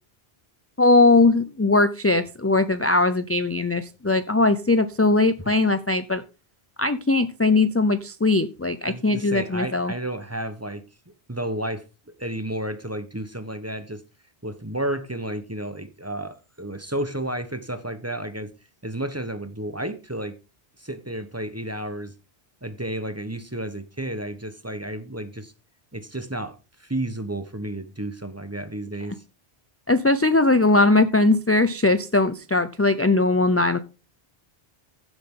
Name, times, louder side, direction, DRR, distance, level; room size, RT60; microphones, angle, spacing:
voice 1, 0.8-6.2 6.8-9.9 29.9-33.8, left 2 dB, 15° left, 0.5 m, -20 dB
voice 2, 8.8-10.8 11.3-14.0 14.4-18.5 18.8-20.4 20.8-22.1 22.6-25.5 25.9-29.2, right 1 dB, 15° right, 1.1 m, -32 dB
16.0 x 7.7 x 3.8 m
omnidirectional pair, 1.1 m